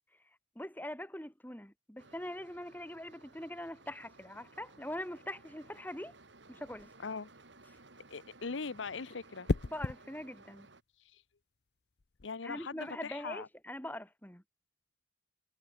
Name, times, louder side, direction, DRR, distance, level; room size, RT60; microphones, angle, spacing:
voice 1, 0.6-6.2 6.5-6.9 9.7-10.7 12.4-14.4, left 1 dB, 10° left, 2.3 m, -43 dB
sound 1, 2.0-10.8, right 3 dB, 75° right, 2.7 m, -58 dB
sound 2, 6.6-7.0 9.5-10.0 12.0-12.3, left 3 dB, 60° left, 0.7 m, -34 dB
voice 2, 8.1-9.5 11.1-11.2 12.2-13.5, left 4 dB, 90° left, 0.9 m, -40 dB
head